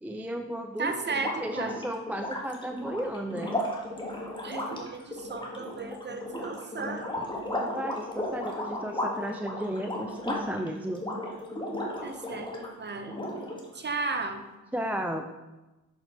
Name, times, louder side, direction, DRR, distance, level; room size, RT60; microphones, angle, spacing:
voice 1, 0.0-3.6 7.5-11.1 14.7-15.3, right 1 dB, 5° right, 5 dB, 0.4 m, -34 dB
voice 2, 0.8-1.8 4.4-7.1 12.0-12.5 12.8-13.2 13.7-14.4, right 4 dB, 30° right, 6 dB, 0.9 m, -34 dB
sound 1, 1.1-12.7 13.1-13.9, left 1 dB, 10° left, 1.6 m, -35 dB
6.4 x 4.7 x 4.0 m, 1.1 s
supercardioid pair, 65°, 38 cm